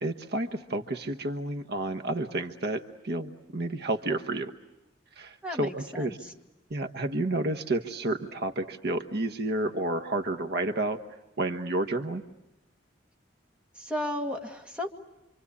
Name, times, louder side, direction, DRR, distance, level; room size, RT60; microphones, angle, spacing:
voice 1, 0.0-4.5 5.2-6.2 6.7-11.0 11.4-12.2, right 2 dB, 60° right, 7 dB, 1.1 m, -30 dB
voice 2, 5.4-6.3 13.8-14.9, left 1 dB, 5° right, 1 dB, 2.1 m, -34 dB
27.0 x 25.5 x 8.4 m, 0.96 s
head